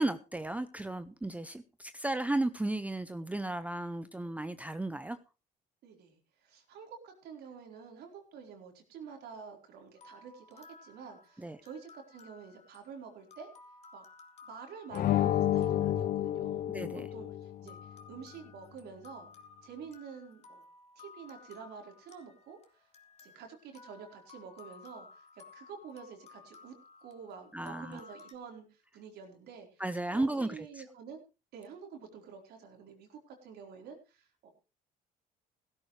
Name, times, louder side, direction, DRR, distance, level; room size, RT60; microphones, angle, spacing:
voice 1, 0.0-5.2 11.4-11.6 16.7-17.1 27.5-28.0 29.8-30.8, right 2 dB, 10° right, 12 dB, 0.6 m, -34 dB
voice 2, 5.8-13.5 13.9-14.0 14.4-16.6 17.1-19.3 19.6-20.6 21.0-22.9 23.2-25.3 25.5-26.7 27.0-29.8 30.1-31.2 31.5-34.5, right 6 dB, 75° right, 2 dB, 4.3 m, -49 dB
sound 1, 10.0-17.1 17.7-28.3, left 4 dB, 40° left, 2.3 m, -56 dB
sound 2, 14.9-17.6, left 12 dB, 60° left, 0.6 m, -30 dB
16.5 x 13.0 x 3.3 m, 0.31 s
cardioid pair, 110°, 17 cm